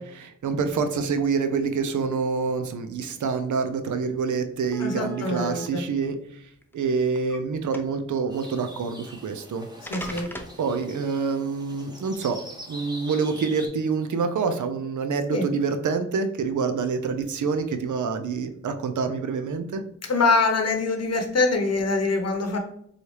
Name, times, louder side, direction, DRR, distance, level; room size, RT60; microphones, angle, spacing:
voice 1, 0.0-9.7 9.9-10.1 10.6-12.4 12.7-19.8, right 5 dB, 85° right, 8 dB, 0.5 m, -27 dB
sound 1, 4.1-4.2 4.7-5.7 6.5-7.4 7.7-8.1 9.2-9.3 9.9-10.6, equal, 5° left, 0.5 m, -39 dB
voice 2, 4.8-5.8 9.9-10.3 15.3-15.4 20.1-22.6, left 3 dB, 55° left, 3 dB, 0.8 m, -24 dB
sound 2, 8.3-13.7, equal, 15° right, 1.0 m, -43 dB
4.1 x 2.4 x 3.2 m, 0.70 s
cardioid pair, 45°, 30 cm